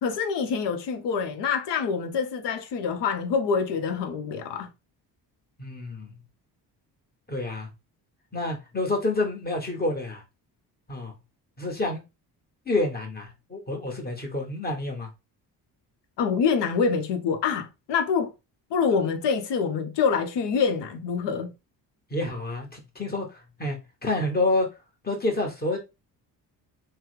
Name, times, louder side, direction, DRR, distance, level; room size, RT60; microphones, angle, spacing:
voice 1, 0.0-4.7 16.2-18.3 18.7-21.5, left 6 dB, 70° left, 0.8 m, -26 dB
voice 2, 5.6-6.1 7.3-7.7 8.3-10.2 10.9-11.1 11.6-12.0 12.6-15.1 22.1-23.8 24.0-24.7 25.0-25.8, left 2 dB, 20° left, 1.4 m, -28 dB
3.3 x 2.2 x 3.2 m
cardioid pair, 70°, 43 cm